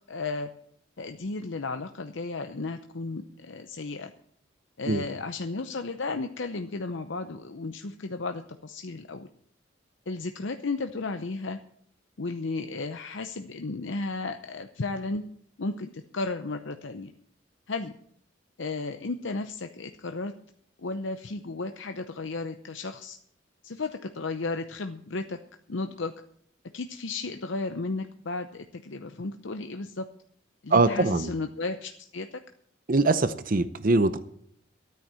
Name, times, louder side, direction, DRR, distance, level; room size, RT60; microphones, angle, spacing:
voice 1, 0.1-0.5 1.0-4.1 4.8-9.3 10.1-11.6 12.2-15.2 15.6-17.1 17.7-18.0 18.6-20.3 20.8-23.2 23.6-25.4 25.7-26.1 26.7-30.1 30.6-32.4, left 3 dB, 70° left, 7 dB, 0.7 m, -34 dB
voice 2, 30.7-31.3 32.9-34.2, right 3 dB, 45° right, 12 dB, 0.7 m, -22 dB
13.0 x 9.3 x 7.4 m, 0.65 s
head